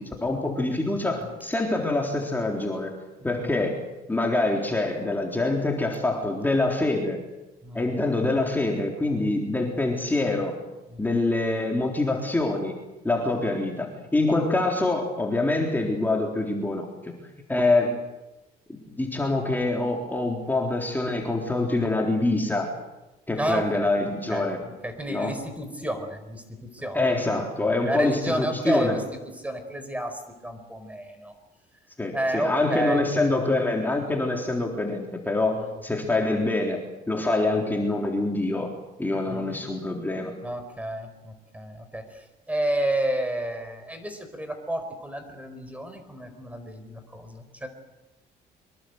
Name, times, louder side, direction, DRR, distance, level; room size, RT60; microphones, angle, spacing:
voice 1, 0.0-2.9 3.2-3.8 4.1-7.2 7.7-10.5 11.0-12.8 13.0-17.1 17.5-18.0 18.9-22.7 23.3-24.6 25.1-25.3 26.9-29.0 32.0-38.7 39.0-40.3, left 2 dB, 10° left, 0 dB, 3.8 m, -25 dB
voice 2, 23.3-31.3 32.1-33.0 35.5-35.8 36.0-36.1 39.3-39.6 40.4-47.7, right 1 dB, 10° right, 8 dB, 4.6 m, -31 dB
25.0 x 22.5 x 8.1 m, 1.0 s
cardioid pair, 110°, 17 cm